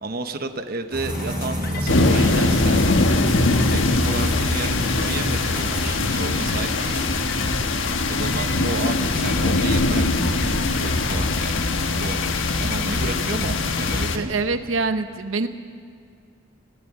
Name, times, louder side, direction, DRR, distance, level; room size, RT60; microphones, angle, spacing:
voice 1, 0.0-2.9 3.7-7.1 8.1-11.6 12.0-14.4, right 3 dB, 50° right, 7 dB, 1.0 m, -32 dB
sound 1, 0.9-5.9, right 1 dB, 5° right, 5.1 m, -29 dB
sound 2, 1.1-14.1, left 2 dB, 45° left, 1.5 m, -32 dB
sound 3, 1.9-14.2, left 2 dB, 75° left, 1.3 m, -22 dB
voice 2, 14.1-15.5, right 3 dB, 85° right, 9 dB, 0.9 m, -24 dB
20.5 x 17.5 x 7.3 m, 2.3 s
head